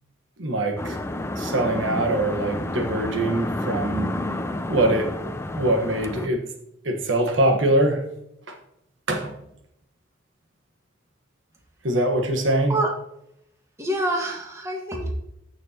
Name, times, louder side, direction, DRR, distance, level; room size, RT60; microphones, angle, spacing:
voice 1, 0.4-1.0 1.4-4.1 4.7-5.1 5.5-6.4 6.8-8.0 8.5-8.6 9.1-9.3 11.8-12.8, right 1 dB, 80° right, 4 dB, 1.3 m, -23 dB
sound 1, 0.8-6.3, left 1 dB, 15° left, 0.5 m, -30 dB
voice 2, 13.8-15.1, right 1 dB, 15° right, 1 dB, 1.6 m, -26 dB
14.5 x 6.4 x 2.9 m, 0.79 s
head